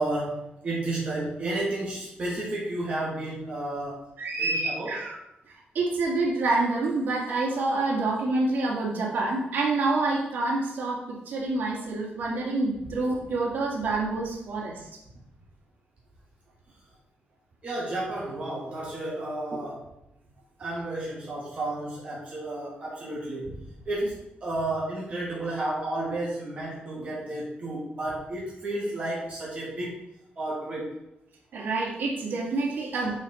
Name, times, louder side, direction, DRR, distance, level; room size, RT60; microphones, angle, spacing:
voice 1, 0.0-4.0 4.4-4.9 17.6-19.8 20.6-23.5 23.9-29.9 30.4-30.9, right 2 dB, 40° right, -6 dB, 2.5 m, -32 dB
voice 2, 4.2-5.2 5.7-14.9 27.0-27.1 31.5-33.1, right 3 dB, 60° right, -4 dB, 2.3 m, -27 dB
10.5 x 4.3 x 4.6 m, 0.86 s
wide cardioid pair, 155°, 3 cm